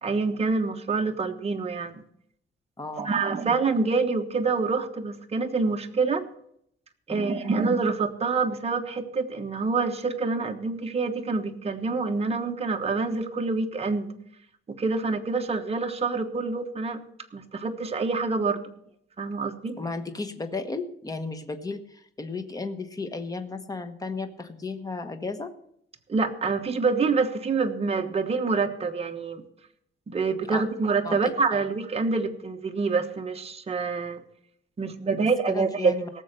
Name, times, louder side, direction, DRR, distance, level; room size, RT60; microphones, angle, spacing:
voice 1, 0.0-2.0 3.0-6.2 7.1-14.1 14.8-17.0 17.3-18.6 19.2-19.7 26.1-29.4 30.1-34.2 34.8-35.9, right 4 dB, 30° right, 4 dB, 1.2 m, -26 dB
voice 2, 2.8-3.2 7.1-7.4 19.8-25.5 30.5-30.6 31.0-31.6 35.2-36.1, left 3 dB, 15° left, 8 dB, 1.2 m, -34 dB
18.0 x 7.0 x 6.6 m, 0.71 s
wide cardioid pair, 160°, 21 cm